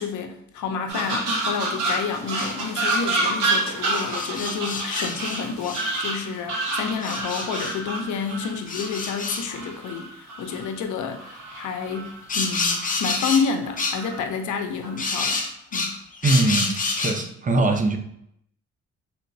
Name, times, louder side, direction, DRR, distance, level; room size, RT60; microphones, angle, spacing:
voice 1, 0.0-15.4 15.7-16.0, left 6 dB, 75° left, 6 dB, 0.6 m, -29 dB
sound 1, 0.9-10.7 11.1-12.2 12.5-13.1 13.6-14.2 14.8-15.1, right 2 dB, 85° right, 1.0 m, -29 dB
sound 2, 2.4-2.6 3.9-5.9 7.0-7.8 8.7-9.5 12.3-13.5 13.8-14.0 15.0-17.2, left 4 dB, 25° left, 0.6 m, -28 dB
voice 2, 16.2-18.0, right 2 dB, 25° right, 4 dB, 0.5 m, -22 dB
3.3 x 3.0 x 2.6 m, 0.73 s
cardioid pair, 90°, 30 cm